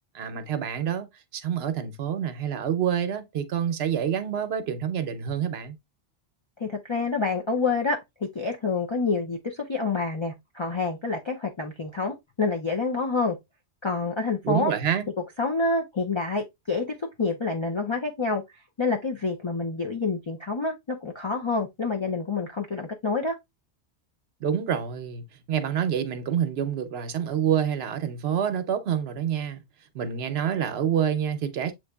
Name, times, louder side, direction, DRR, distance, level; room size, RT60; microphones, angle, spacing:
voice 1, 0.1-5.8 14.4-15.1 24.4-29.6 29.9-31.7, right 8 dB, 70° right, 0.8 m, -27 dB
voice 2, 6.6-13.4 13.8-14.7 15.4-18.4 18.8-23.3, left 3 dB, 45° left, 0.3 m, -27 dB
7.5 x 2.6 x 2.2 m
omnidirectional pair, 1.2 m